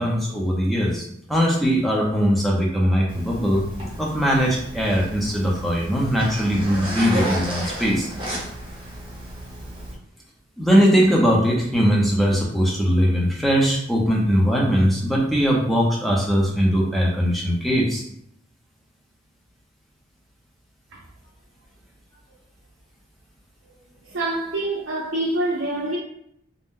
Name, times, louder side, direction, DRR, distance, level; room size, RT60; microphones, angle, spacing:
voice 1, 0.0-3.6 4.0-8.1 10.6-18.0, equal, ahead, 0.6 m, -20 dB
Zipper (clothing), 3.1-9.9, right 1 dB, 25° right, 1.0 m, -33 dB
voice 2, 24.1-26.0, right 1 dB, 85° right, 0.6 m, -25 dB
2.6 x 2.1 x 3.6 m
head